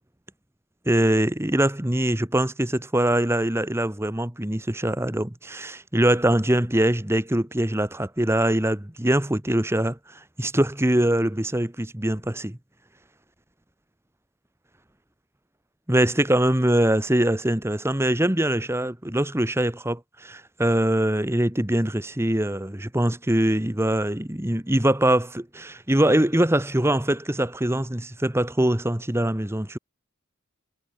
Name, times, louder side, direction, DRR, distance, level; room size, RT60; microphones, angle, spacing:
voice 1, 0.9-10.0 10.4-12.6 15.9-29.8, right 1 dB, 10° right, 1.2 m, -23 dB
head